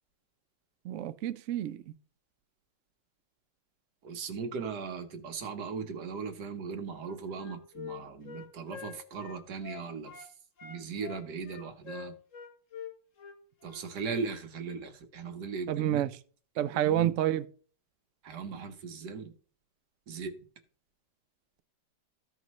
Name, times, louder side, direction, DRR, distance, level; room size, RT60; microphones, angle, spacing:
voice 1, 0.8-1.8 15.7-16.1 16.6-17.5, right 12 dB, 90° right, 0.6 m, -28 dB
voice 2, 4.0-10.3 10.6-12.1 13.6-16.1 16.5-17.2 18.2-19.3 20.1-20.3, right 5 dB, 65° right, 1.6 m, -38 dB
Wind instrument woodwind instrument, 6.9-10.3 10.6-13.9, left 8 dB, 50° left, 1.4 m, -45 dB
14.0 x 5.1 x 3.1 m
omnidirectional pair, 1.9 m